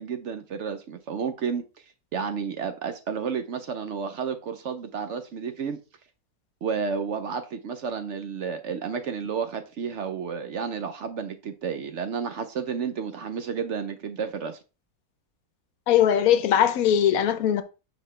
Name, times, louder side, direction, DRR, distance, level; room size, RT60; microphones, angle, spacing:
voice 1, 0.0-1.6 2.1-5.8 6.6-14.6, right 6 dB, 60° right, 0.8 m, -31 dB
voice 2, 15.9-17.6, left 10 dB, 75° left, 1.1 m, -20 dB
6.5 x 5.0 x 3.2 m
omnidirectional pair, 1.5 m